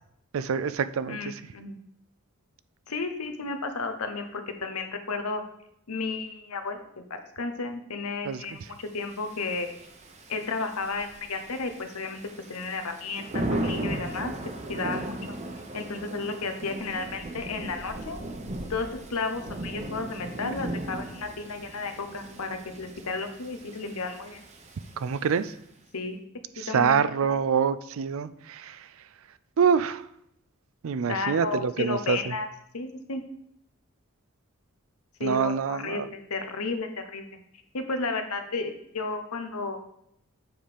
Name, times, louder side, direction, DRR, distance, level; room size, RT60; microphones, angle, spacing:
voice 1, 0.3-1.3 8.2-8.4 25.0-25.5 26.6-28.8 29.6-30.0 30.8-32.2 35.2-36.1, right 6 dB, 65° right, 14 dB, 0.4 m, -26 dB
voice 2, 1.1-1.8 2.9-5.4 5.9-9.7 10.3-12.2 12.5-14.3 14.7-15.2 15.7-18.2 18.7-24.4 25.9-26.2 26.7-27.3 31.1-32.5 32.7-33.2 35.2-37.2 37.7-39.8, left 3 dB, 85° left, 7 dB, 1.0 m, -33 dB
Thunder / Rain, 9.0-25.6, right 1 dB, 30° right, 0.8 m, -37 dB
7.8 x 4.9 x 5.1 m, 0.74 s
head